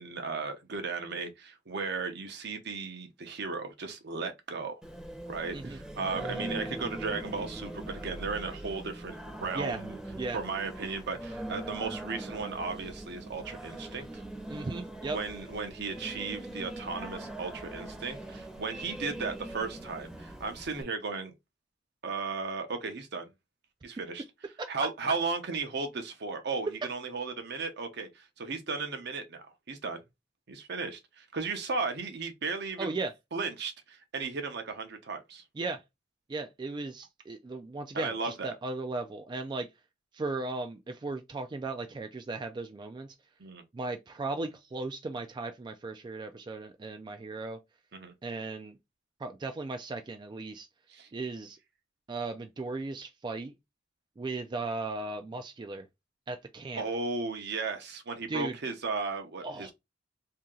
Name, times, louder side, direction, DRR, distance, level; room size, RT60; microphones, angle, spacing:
voice 1, 0.0-4.8 5.3-10.0 10.3-14.2 14.5-14.6 15.1-21.3 22.0-23.3 23.8-24.2 24.7-30.0 30.5-32.9 33.3-35.4 37.9-38.5 43.4-43.6 47.9-48.1 50.9-51.1 56.8-59.7, right 4 dB, 60° right, 0.7 m, -35 dB
Singing, 4.8-20.8, right 1 dB, 5° right, 0.7 m, -41 dB
voice 2, 14.5-15.2 24.6-24.7 32.8-33.1 35.6-35.8 36.3-39.7 40.1-43.1 43.7-47.6 48.2-48.8 49.2-50.7 51.1-51.6 52.1-53.5 54.2-55.9 56.3-56.9 58.3-58.5 59.4-59.7, right 3 dB, 25° right, 0.3 m, -36 dB
2.8 x 2.7 x 3.6 m
head